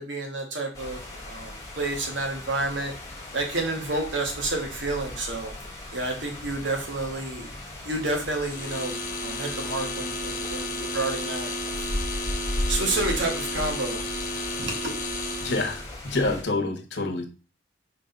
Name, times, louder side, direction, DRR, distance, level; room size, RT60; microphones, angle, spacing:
voice 1, 0.0-2.9 3.3-5.5 5.9-7.5 7.8-11.5 12.7-14.0 14.6-14.9, right 2 dB, 75° right, 1 dB, 2.0 m, -30 dB
sound 1, 0.7-16.4, left 1 dB, 20° left, 1.8 m, -37 dB
sound 2, 8.4-15.9, left 1 dB, 40° left, 1.4 m, -32 dB
voice 2, 15.4-17.3, left 2 dB, 65° left, 3 dB, 1.3 m, -27 dB
5.3 x 3.9 x 5.3 m, 0.33 s
head